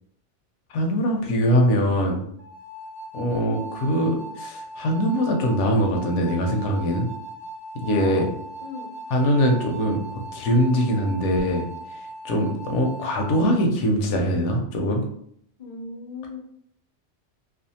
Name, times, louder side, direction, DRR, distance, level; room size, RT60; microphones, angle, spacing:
voice 1, 0.7-2.2 3.1-7.1 7.7-8.2 9.1-11.7 11.9-15.0, equal, 80° left, 2 dB, 0.9 m, -22 dB
sound 1, 2.4-13.6, right 2 dB, 65° right, 0.9 m, -39 dB
voice 2, 3.4-3.7 7.8-8.2 8.6-8.9 12.4-12.6 15.6-16.4, left 4 dB, 55° left, 1 dB, 0.4 m, -37 dB
2.5 x 2.3 x 2.7 m, 0.67 s
omnidirectional pair, 1.2 m